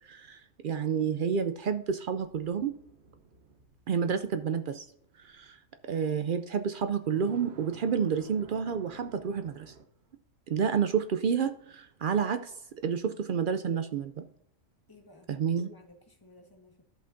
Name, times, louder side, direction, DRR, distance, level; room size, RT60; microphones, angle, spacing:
voice 1, 0.0-2.8 3.9-4.8 5.2-5.6 5.8-9.7 10.5-12.5 12.8-14.2 15.3-15.8, right 7 dB, 80° right, 9 dB, 0.4 m, -30 dB
sound 1, 2.2-5.3 6.8-9.8, right 4 dB, 55° right, 1.1 m, -52 dB
voice 2, 14.9-16.8, left 2 dB, 15° left, 3 dB, 1.4 m, -57 dB
13.5 x 5.6 x 2.6 m, 0.71 s
omnidirectional pair, 1.5 m